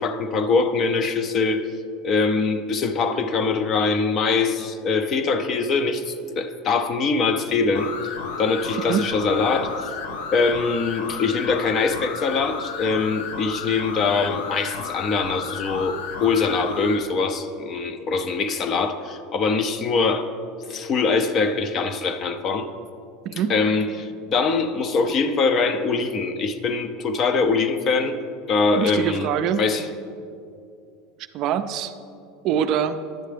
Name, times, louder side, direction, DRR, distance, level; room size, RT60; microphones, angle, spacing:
voice 1, 0.0-1.7 2.0-8.1 8.4-9.9 10.3-20.3 20.7-22.7 23.5-28.2 28.5-29.3 29.6-29.9, left 4 dB, 35° left, 10 dB, 0.5 m, -23 dB
sound 1, 7.7-17.0, left 5 dB, 85° left, 0.6 m, -33 dB
voice 2, 28.7-29.6 31.3-32.0 32.4-33.0, right 9 dB, 50° right, 10 dB, 0.4 m, -24 dB
10.5 x 7.4 x 3.4 m, 2.5 s
supercardioid pair, 140°, 0 cm